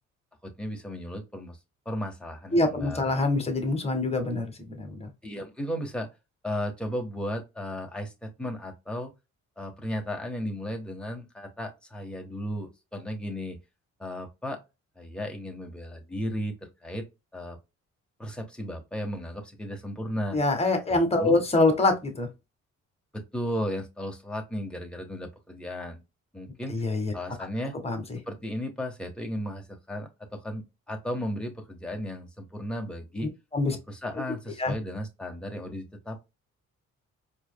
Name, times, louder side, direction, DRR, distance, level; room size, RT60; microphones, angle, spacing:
voice 1, 0.4-1.6 1.8-3.0 5.2-6.1 6.4-9.1 9.6-13.6 14.0-14.6 15.0-17.0 17.3-17.6 18.2-20.4 20.9-21.4 23.1-26.0 26.3-26.8 27.1-27.8 28.3-33.3 33.9-36.4, equal, 5° left, 1.5 m, -35 dB
voice 2, 2.5-5.1 20.3-22.3 26.7-27.1 27.8-28.2 33.5-33.8 34.6-34.7, left 2 dB, 20° left, 1.5 m, -25 dB
4.6 x 3.2 x 2.3 m
cardioid pair, 90°, 30 cm